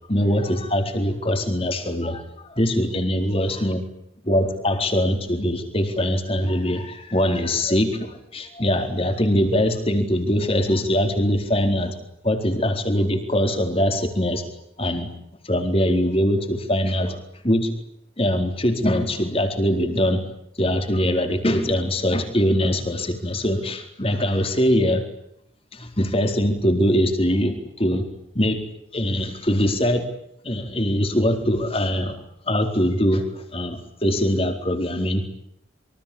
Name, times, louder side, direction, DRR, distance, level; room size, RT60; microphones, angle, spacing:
voice 1, 0.1-3.8 4.2-11.9 12.2-14.4 14.8-15.1 15.4-17.8 18.2-20.2 20.6-25.0 25.7-28.1 28.3-28.6 28.9-30.1 30.4-35.4, equal, 30° left, 5 dB, 4.3 m, -22 dB
27.0 x 24.5 x 8.8 m, 0.75 s
head